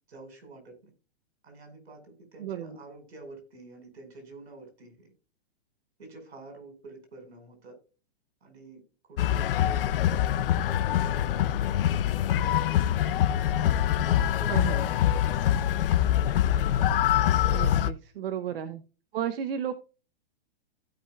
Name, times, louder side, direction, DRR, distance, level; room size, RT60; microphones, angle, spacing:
voice 1, 0.1-0.9 1.4-5.1 6.0-7.8 8.4-8.8 9.1-9.9 10.6-14.9 15.2-15.8 18.5-18.6, right 3 dB, 85° right, 5 dB, 5.2 m, -48 dB
voice 2, 2.4-2.8 14.5-14.9 17.5-18.8 19.1-19.7, right 9 dB, 65° right, 11 dB, 1.1 m, -33 dB
sound 1, 9.2-17.9, left 11 dB, 60° left, 0.8 m, -24 dB
16.0 x 5.6 x 2.4 m, 0.34 s
hypercardioid pair, 140°, 31 cm